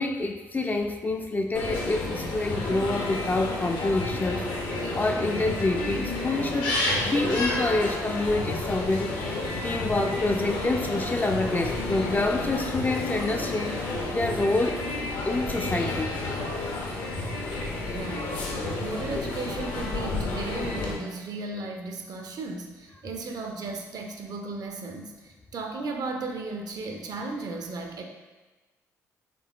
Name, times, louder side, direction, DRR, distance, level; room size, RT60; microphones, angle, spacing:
voice 1, 0.0-4.5 4.9-6.7 7.1-9.4 9.6-14.8 15.3-16.1, left 2 dB, 20° left, 4 dB, 0.3 m, -27 dB
sound 1, 1.5-20.9, left 2 dB, 65° left, 0.7 m, -30 dB
voice 2, 17.8-18.4 18.8-28.0, right 3 dB, 50° right, 3 dB, 0.5 m, -35 dB
3.7 x 3.4 x 2.3 m, 1.2 s
hypercardioid pair, 45°, 9 cm